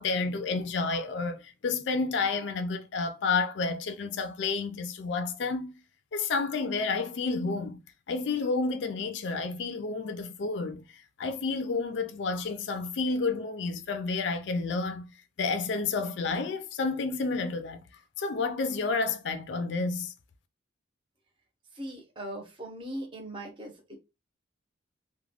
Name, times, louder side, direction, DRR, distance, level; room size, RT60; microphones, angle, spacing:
voice 1, 0.0-5.7 6.1-7.8 8.1-15.1 15.4-17.8 18.2-20.1, left 4 dB, 65° left, 0.4 m, -30 dB
voice 2, 21.7-24.0, right 1 dB, 25° right, 0.7 m, -39 dB
2.4 x 2.1 x 3.3 m
head